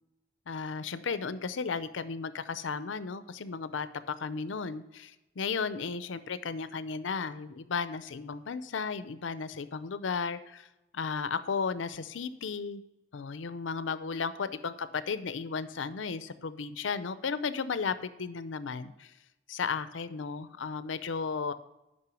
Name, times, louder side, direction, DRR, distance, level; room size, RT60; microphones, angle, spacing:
voice 1, 0.5-10.7 10.9-12.8 13.1-19.1 19.5-21.5, left 5 dB, 80° left, 13 dB, 0.6 m, -34 dB
9.8 x 5.5 x 6.2 m, 0.97 s
head